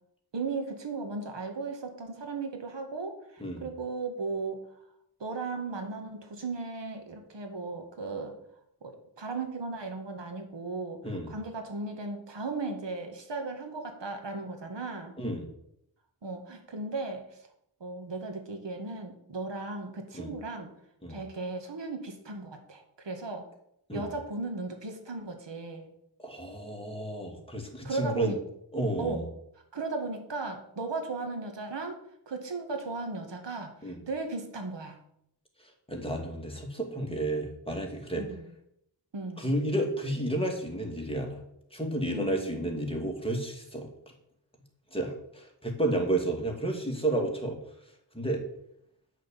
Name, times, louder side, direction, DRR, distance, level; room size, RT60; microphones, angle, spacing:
voice 1, 0.3-4.6 5.2-8.4 8.8-15.1 16.2-17.4 17.8-20.7 21.1-23.4 23.9-25.9 27.8-28.4 29.0-29.2 29.7-32.0 32.3-35.0 38.1-38.5 39.1-39.5 42.1-42.6, right 3 dB, 80° right, 4 dB, 2.0 m, -36 dB
voice 2, 15.2-15.5 20.1-20.3 21.0-21.2 23.9-24.1 26.2-28.4 28.7-29.2 33.8-34.0 35.9-38.3 39.4-41.4 41.7-43.9 44.9-47.6 48.1-48.4, right 1 dB, 15° left, 1 dB, 2.5 m, -31 dB
10.5 x 6.3 x 7.3 m, 0.75 s
wide cardioid pair, 100°, 42 cm